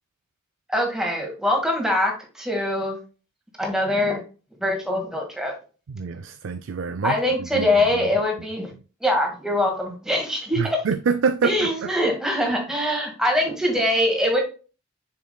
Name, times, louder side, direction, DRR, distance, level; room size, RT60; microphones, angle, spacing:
voice 1, 0.7-3.0 3.6-4.2 4.6-5.5 7.0-8.7 9.0-10.8 11.4-14.4, left 1 dB, 5° right, 1.8 m, -23 dB
voice 2, 5.9-8.1 10.6-11.9, right 5 dB, 85° right, 0.4 m, -26 dB
7.1 x 6.0 x 2.2 m
head